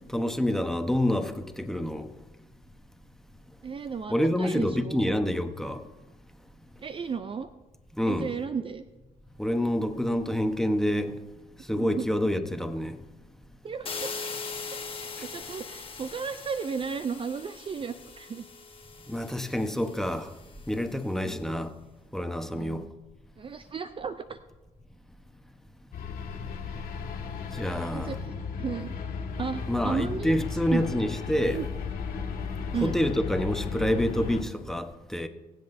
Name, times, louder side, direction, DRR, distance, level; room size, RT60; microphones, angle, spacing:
voice 1, 0.1-2.1 4.1-5.9 8.0-8.3 9.4-11.2 11.7-13.0 19.1-20.3 20.7-21.7 22.1-22.9 27.5-28.2 29.7-31.6 32.8-35.3, equal, 5° left, 1.0 m, -27 dB
voice 2, 3.6-5.1 6.8-7.5 8.1-8.8 11.7-12.1 13.6-14.1 14.6-18.4 21.2-21.5 22.5-22.9 23.4-24.4 27.9-28.9 29.4-30.4 30.7-30.9 31.5-31.6 32.7-32.9, right 6 dB, 35° right, 0.5 m, -34 dB
sound 1, 13.9-20.7, left 4 dB, 35° left, 1.4 m, -41 dB
sound 2, 25.9-34.4, left 5 dB, 70° left, 1.8 m, -35 dB
23.0 x 7.9 x 2.7 m
supercardioid pair, 75°, 16 cm